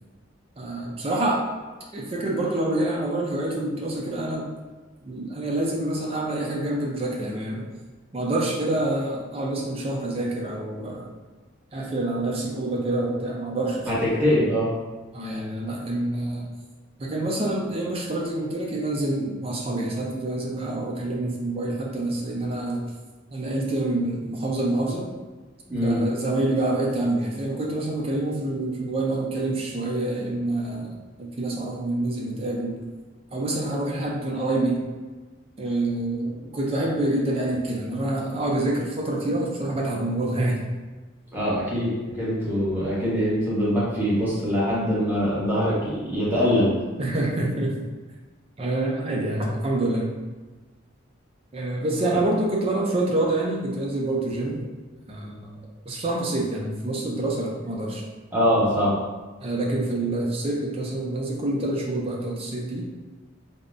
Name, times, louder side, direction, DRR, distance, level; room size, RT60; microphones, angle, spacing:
voice 1, 0.6-1.4 1.9-4.5 5.0-7.7 8.1-11.1 11.7-14.5 15.1-16.5 17.0-22.9 23.3-25.1 25.8-30.9 31.2-32.8 33.3-34.8 35.6-40.6 47.0-47.7 48.6-50.1 51.5-54.6 55.1-55.6 55.9-58.0 59.4-62.9, right 2 dB, 30° right, -1 dB, 0.4 m, -27 dB
voice 2, 13.9-14.7 25.7-26.0 41.3-46.7 58.3-58.9, equal, 10° right, -9 dB, 0.8 m, -23 dB
3.5 x 2.0 x 2.5 m, 1.3 s
head